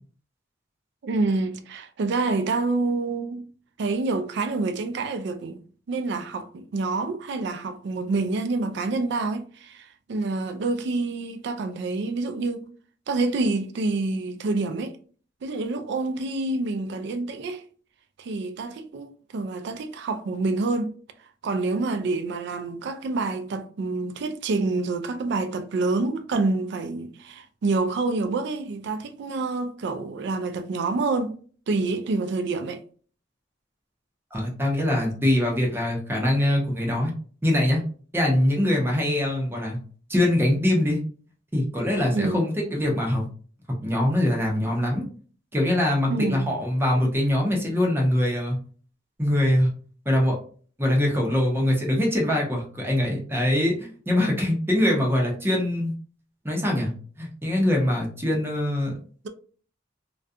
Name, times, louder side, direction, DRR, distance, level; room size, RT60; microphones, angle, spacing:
voice 1, 1.0-3.4 3.8-12.7 13.1-15.0 15.4-17.6 18.2-20.9 21.4-31.4 31.7-32.8 42.1-42.5 46.1-46.5 59.2-59.3, right 3 dB, 65° right, 0.3 m, -27 dB
voice 2, 34.3-37.1 37.4-37.8 38.1-39.8 40.1-41.0 41.5-43.3 43.8-45.0 45.5-48.6 49.2-49.7 50.1-50.4 50.8-55.9 56.4-56.9 57.2-58.9, left 1 dB, 10° right, 0.6 m, -23 dB
2.4 x 2.2 x 2.6 m
head